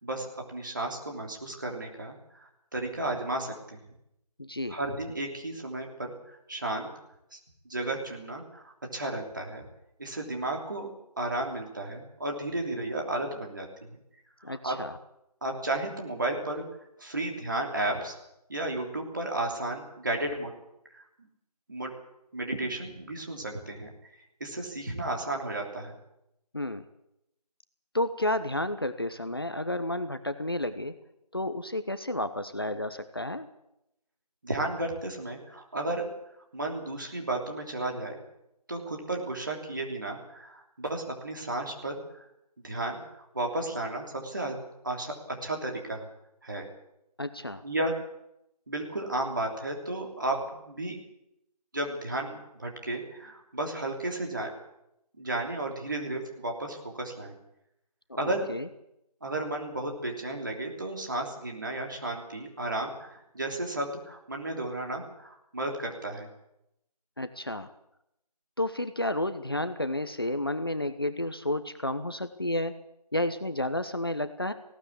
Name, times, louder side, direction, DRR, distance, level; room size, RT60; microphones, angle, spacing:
voice 1, 0.0-3.8 4.7-6.1 6.5-6.9 7.3-7.4 7.6-9.6 10.0-10.9 11.2-14.0 14.5-14.8 15.4-16.6 17.0-18.1 18.5-20.5 20.9-21.0 21.7-21.9 22.3-23.9 24.4-25.9 34.4-36.0 36.5-38.2 38.7-42.2 42.6-43.0 43.3-44.6 44.8-46.1 46.4-46.7 47.6-47.9 48.7-51.0 51.7-54.5 55.2-57.3 58.2-58.5 59.2-66.3, right 2 dB, 30° right, 1 dB, 3.1 m, -33 dB
voice 2, 4.4-4.8 14.4-15.0 26.5-26.8 27.9-30.9 31.3-33.5 47.2-47.6 58.1-58.7 67.2-67.7 68.6-72.7 73.1-74.5, left 1 dB, 35° left, 10 dB, 0.9 m, -31 dB
19.0 x 17.5 x 8.4 m, 0.84 s
figure-of-eight pair, 175°, 21 cm